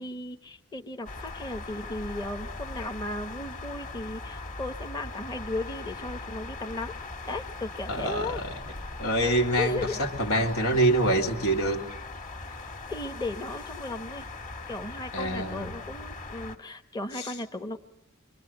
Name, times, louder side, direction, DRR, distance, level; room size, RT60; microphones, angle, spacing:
voice 1, 0.0-6.9 7.2-8.4 9.6-10.0 12.5-12.6 12.9-14.2 14.7-17.8, left 2 dB, 20° left, 6 dB, 1.0 m, -36 dB
sound 1, 1.1-16.6, left 3 dB, 35° left, 2.0 m, -40 dB
voice 2, 7.9-8.5 9.0-11.9 15.1-15.7 17.2-17.3, right 1 dB, 85° left, 3 dB, 2.6 m, -26 dB
26.5 x 23.0 x 7.8 m, 0.75 s
head